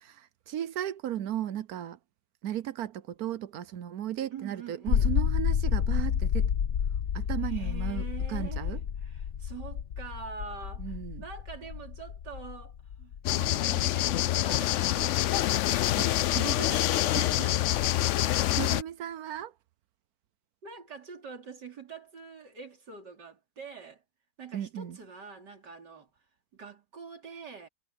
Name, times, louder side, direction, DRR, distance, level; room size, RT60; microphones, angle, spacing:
voice 1, 0.0-2.0 2.4-6.5 7.1-8.8 10.8-11.2 16.0-16.1 16.3-16.8 17.2-17.6 18.2-19.5 24.5-25.0, right 11 dB, 70° right, 1.1 m, -36 dB
voice 2, 4.3-5.1 7.4-13.1 13.4-16.3 20.6-24.0 24.4-26.1 26.5-27.7, right 5 dB, 85° right, 3.9 m, -45 dB
sound 1, 4.9-15.0, left 8 dB, 50° left, 0.9 m, -30 dB
sound 2, 13.2-18.8, left 14 dB, 80° left, 0.6 m, -26 dB
omnidirectional pair, 1.8 m